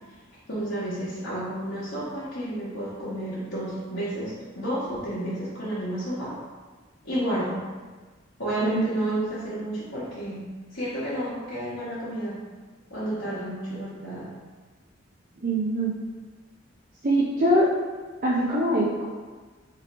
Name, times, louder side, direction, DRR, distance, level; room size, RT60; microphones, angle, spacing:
voice 1, 0.5-6.4 7.0-7.6 8.4-10.4 10.7-12.4 12.9-14.3, right 1 dB, 75° left, -12 dB, 1.1 m, -31 dB
voice 2, 15.4-15.9 17.0-17.7 18.2-19.0, right 1 dB, 45° right, -5 dB, 0.5 m, -23 dB
3.1 x 2.8 x 4.1 m, 1.4 s
head